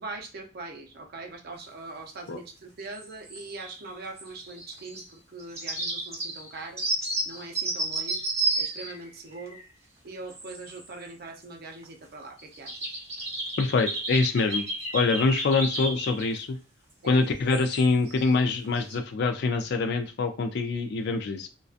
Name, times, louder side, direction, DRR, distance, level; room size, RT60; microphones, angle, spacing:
voice 1, 0.0-6.9 7.3-8.3 8.5-9.6 10.0-13.0 17.0-17.3, right 3 dB, 50° right, 4 dB, 0.5 m, -42 dB
sound 1, 2.9-3.9 4.2-5.0 5.4-9.6 10.3-10.9 11.3-11.4 11.8-11.9 12.4-16.4 17.1-17.2 17.5-18.3 18.6-18.9, right 2 dB, 30° right, 1.1 m, -32 dB
voice 2, 13.6-14.6 14.9-16.6 17.0-21.5, left 3 dB, 55° left, 7 dB, 0.4 m, -25 dB
2.5 x 2.2 x 2.4 m, 0.33 s
head